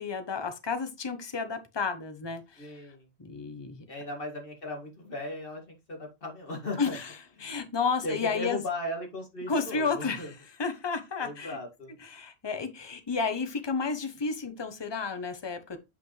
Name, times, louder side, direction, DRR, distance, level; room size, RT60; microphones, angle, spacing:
voice 1, 0.0-3.8 6.8-7.1 7.4-8.6 9.5-11.6 12.0-15.8, left 5 dB, 25° left, 0.9 m, -32 dB
voice 2, 2.6-3.1 3.9-7.0 7.4-7.5 8.0-10.3 11.2-11.9, left 1 dB, 55° left, 2.4 m, -37 dB
8.2 x 5.1 x 3.2 m
omnidirectional pair, 1.1 m